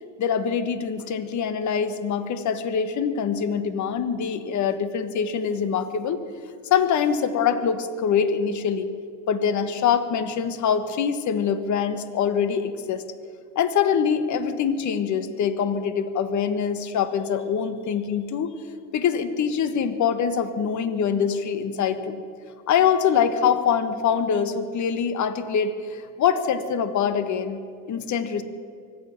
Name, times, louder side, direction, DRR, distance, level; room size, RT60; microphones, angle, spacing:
voice 1, 0.2-6.2 6.7-8.9 9.3-13.0 13.5-18.5 18.9-22.2 22.7-27.6 27.9-28.4, left 7 dB, 50° left, 11 dB, 1.3 m, -24 dB
24.0 x 9.3 x 5.9 m, 2.3 s
supercardioid pair, 85°, 37 cm